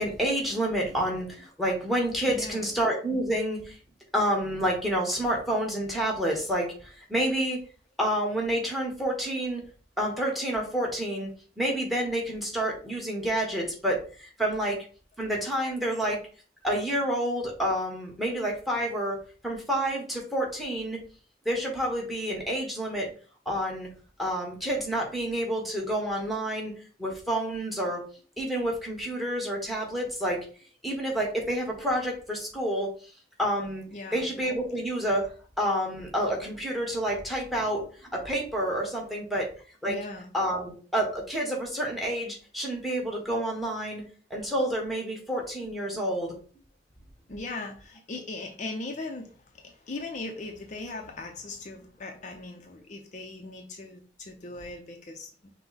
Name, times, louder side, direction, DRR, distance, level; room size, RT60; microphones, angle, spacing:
voice 1, 0.0-3.8 4.1-7.6 8.0-9.6 10.0-11.3 11.6-14.9 15.2-16.2 16.6-19.2 19.4-21.0 21.4-23.1 23.5-23.9 24.2-26.7 27.0-28.0 28.4-30.4 30.8-32.9 33.4-33.8 34.1-35.3 35.6-37.8 38.1-39.5 39.8-40.0 40.3-44.0 44.3-46.3, right 1 dB, ahead, 0 dB, 1.1 m, -29 dB
voice 2, 2.3-2.7 33.9-34.4 39.8-40.3 47.3-55.3, left 2 dB, 40° left, 3 dB, 0.5 m, -39 dB
5.8 x 2.1 x 4.0 m, 0.41 s
head